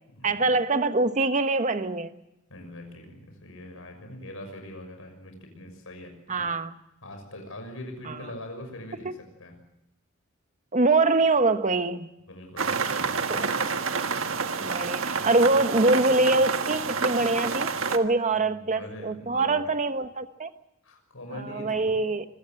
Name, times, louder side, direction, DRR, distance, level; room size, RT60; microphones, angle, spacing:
voice 1, 0.2-2.1 6.3-6.7 8.1-8.2 9.0-9.1 10.7-12.1 13.3-13.5 14.6-20.5 21.3-22.3, right 3 dB, 35° right, 9 dB, 1.2 m, -24 dB
voice 2, 2.5-6.5 7.0-9.5 12.3-13.5 18.3-19.6 20.8-22.0, left 1 dB, 75° left, 5 dB, 6.4 m, -42 dB
sound 1, 12.6-18.0, right 5 dB, 70° right, 1.5 m, -28 dB
25.5 x 16.0 x 7.8 m, 0.89 s
head